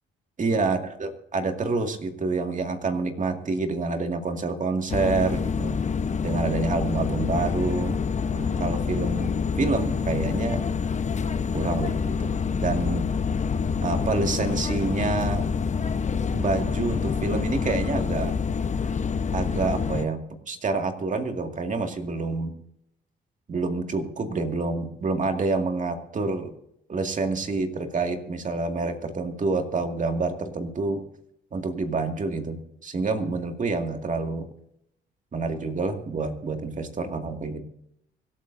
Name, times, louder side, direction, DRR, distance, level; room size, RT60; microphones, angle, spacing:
voice 1, 0.4-5.8 6.2-8.0 8.3-10.6 11.5-12.3 12.6-13.1 13.8-15.5 16.3-18.3 19.3-22.5 23.5-26.5 26.9-31.0 31.5-34.5 35.3-37.6, right 3 dB, 40° right, 5 dB, 2.2 m, -27 dB
sound 1, 4.9-20.1, left 6 dB, 35° left, 1.0 m, -27 dB
25.0 x 13.0 x 2.7 m, 0.75 s
cardioid pair, 90°, 20 cm